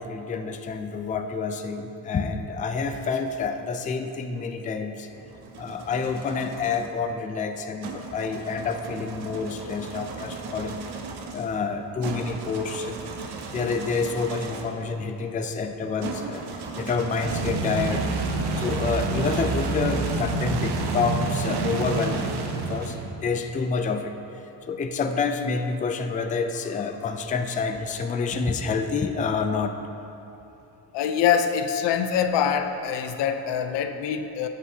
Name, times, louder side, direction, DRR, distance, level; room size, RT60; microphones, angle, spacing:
voice 1, 0.0-5.1 5.6-10.8 11.3-13.0 13.5-18.1 18.3-23.0 23.2-24.2 24.7-29.7, left 4 dB, 20° left, 6 dB, 0.4 m, -28 dB
sound 1, 5.1-6.9 7.8-14.8 16.0-23.3, right 3 dB, 65° right, 1.0 m, -31 dB
voice 2, 30.9-34.5, left 8 dB, 80° left, 7 dB, 0.7 m, -24 dB
13.0 x 8.0 x 2.8 m, 2.9 s
cardioid pair, 120°, 42 cm